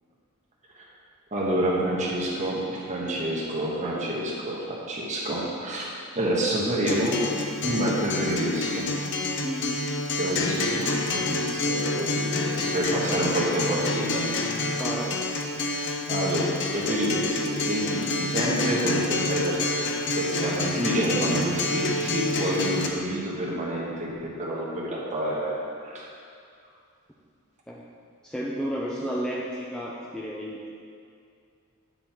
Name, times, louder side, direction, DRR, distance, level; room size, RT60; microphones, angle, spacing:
voice 1, 1.3-7.2 7.6-8.8 10.2-14.7 16.1-19.6 20.2-25.5 25.8-26.1, right 1 dB, 35° right, -5 dB, 1.4 m, -28 dB
Acoustic guitar, 6.9-22.9, left 2 dB, 55° left, 0.6 m, -28 dB
voice 2, 9.4-9.8 14.8-15.1 27.7-27.8 28.2-30.6, equal, 5° left, -5 dB, 0.4 m, -32 dB
9.8 x 3.9 x 4.4 m, 2.3 s
head